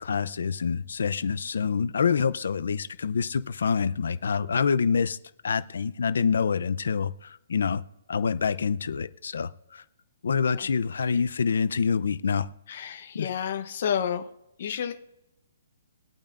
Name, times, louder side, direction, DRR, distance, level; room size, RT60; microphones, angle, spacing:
voice 1, 0.0-5.2 5.4-7.8 8.1-9.8 10.2-12.5 13.1-13.3, left 6 dB, 75° left, 13 dB, 0.6 m, -26 dB
voice 2, 12.7-14.2 14.6-14.9, left 8 dB, 45° left, 5 dB, 0.8 m, -30 dB
23.5 x 8.8 x 2.6 m, 0.91 s
hypercardioid pair, 170°, 0 cm